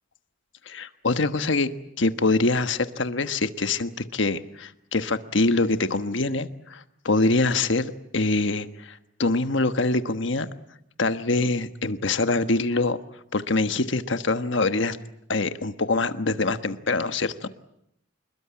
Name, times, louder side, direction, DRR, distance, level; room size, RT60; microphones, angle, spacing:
voice 1, 0.7-1.7 2.0-10.5 11.0-13.0 13.3-15.0 15.3-17.5, left 3 dB, 65° left, 10 dB, 1.3 m, -24 dB
27.0 x 21.5 x 8.8 m, 0.75 s
head